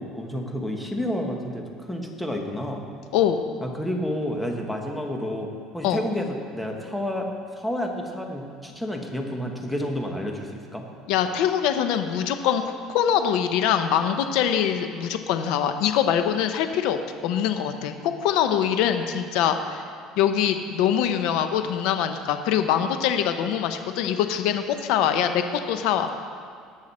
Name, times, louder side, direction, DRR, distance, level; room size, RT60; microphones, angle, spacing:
voice 1, 0.0-2.8 3.6-5.5 5.7-10.8, left 1 dB, 5° left, 2 dB, 1.3 m, -30 dB
voice 2, 3.1-3.4 5.8-6.0 11.1-12.6 12.9-17.0 17.2-19.8 20.2-26.1, left 9 dB, 75° left, 8 dB, 0.7 m, -23 dB
19.5 x 6.5 x 4.2 m, 2.3 s
cardioid pair, 135°, 0 cm